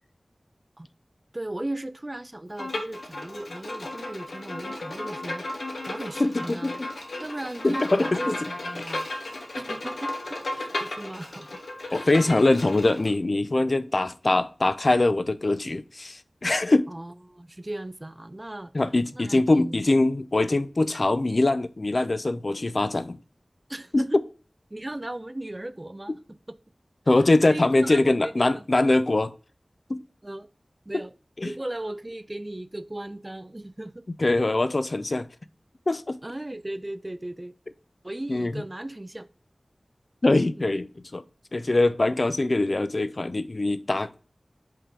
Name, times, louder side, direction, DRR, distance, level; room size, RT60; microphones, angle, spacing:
voice 1, 1.3-6.8 7.2-9.1 9.5-11.6 11.9-12.1 16.9-18.7 19.1-19.8 23.7-24.2 24.7-26.6 27.5-28.7 30.2-30.5 30.9-31.1 31.4-34.1 36.2-37.5 38.0-39.3 40.6-40.7, right 1 dB, 30° right, 0.4 m, -37 dB
Bowed string instrument, 2.6-13.1, left 2 dB, 85° left, 1.4 m, -34 dB
voice 2, 6.2-6.9 7.6-8.3 11.9-16.9 18.7-23.2 23.9-24.2 27.1-29.3 29.9-30.0 31.4-31.5 34.2-35.3 35.9-36.2 38.3-38.6 40.2-41.2 41.5-44.3, left 2 dB, 55° left, 0.5 m, -23 dB
5.6 x 3.6 x 4.9 m
wide cardioid pair, 50°, 0 cm